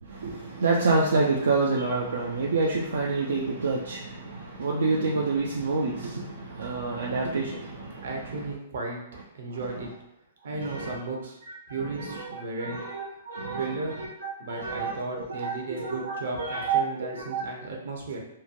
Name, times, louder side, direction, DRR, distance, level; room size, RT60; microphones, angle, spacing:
voice 1, 0.0-8.1 10.6-11.0 11.5-16.8 17.1-17.4, right 3 dB, 90° right, -2 dB, 0.4 m, -28 dB
voice 2, 8.0-9.0 9.3-9.9 10.4-11.4 11.7-12.8 13.5-14.0 14.4-18.2, right 3 dB, 70° right, -1 dB, 0.8 m, -35 dB
3.0 x 2.2 x 2.5 m, 0.83 s
hypercardioid pair, 145°, 0 cm